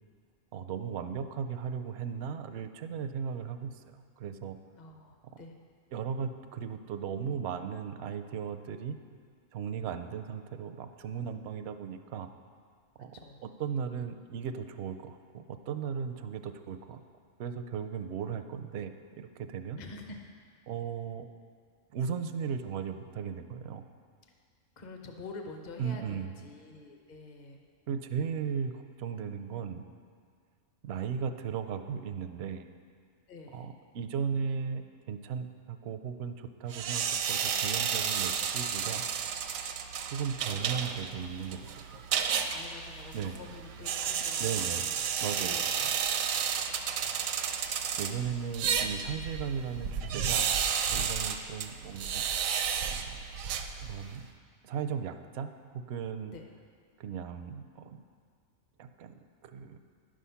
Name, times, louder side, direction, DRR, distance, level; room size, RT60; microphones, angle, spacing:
voice 1, 0.5-4.6 5.9-9.0 9.5-12.3 13.0-13.2 13.4-17.0 17.4-19.8 20.7-21.3 21.9-23.8 25.8-26.3 27.9-29.8 30.8-32.7 33.5-39.0 40.0-42.0 43.1-43.4 44.4-44.8 45.2-45.6 47.7-50.5 50.9-52.2 52.8-53.3 53.8-54.3 54.6-56.3 57.0-58.0 58.8-59.8, right 7 dB, 65° right, 8 dB, 0.7 m, -36 dB
voice 2, 4.8-5.6 13.1-13.4 19.8-20.2 24.8-27.6 33.3-33.7 41.1-41.3 41.6-42.0 42.3-46.0 46.2-47.2 56.3-56.5, left 3 dB, 40° left, 3 dB, 0.9 m, -48 dB
sound 1, 36.7-54.2, right 7 dB, 85° right, 1.0 m, -32 dB
10.5 x 6.3 x 5.6 m, 2.1 s
omnidirectional pair, 1.4 m